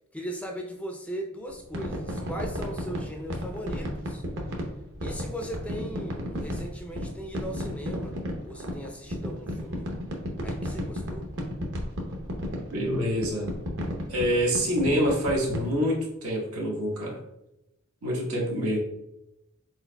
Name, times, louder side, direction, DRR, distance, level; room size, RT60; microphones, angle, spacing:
voice 1, 0.1-4.2 5.0-8.2 8.4-9.9 10.4-11.3, equal, 5° left, 2 dB, 0.4 m, -38 dB
sound 1, 1.5-15.7, equal, 60° right, 0.8 m, -33 dB
voice 2, 12.7-13.5 14.1-17.2 18.0-18.8, equal, 85° right, -3 dB, 1.2 m, -26 dB
4.5 x 4.2 x 2.2 m, 0.89 s
head